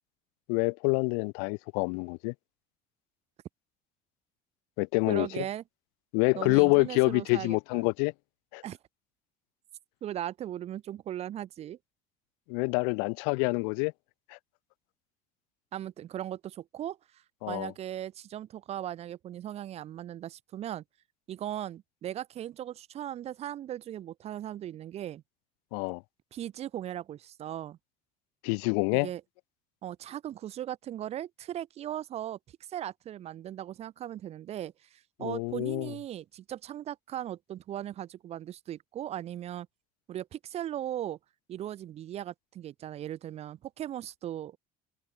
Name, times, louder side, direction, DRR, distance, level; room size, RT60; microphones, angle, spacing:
voice 1, 0.5-2.3 4.8-5.4 6.1-8.1 8.5-8.6 12.5-13.9 14.3-14.4 17.4-17.7 25.7-26.0 28.4-29.1 35.2-35.9, left 40 dB or more, 80° left, 0.4 m, -27 dB
voice 2, 5.1-5.6 6.3-7.9 8.6-8.8 10.0-11.8 15.7-20.8 21.3-25.2 26.3-27.8 28.9-29.2 29.8-32.4 32.7-39.7 40.1-41.2 41.5-44.6, right 11 dB, 35° right, 2.4 m, -38 dB
cardioid pair, 165°, 18 cm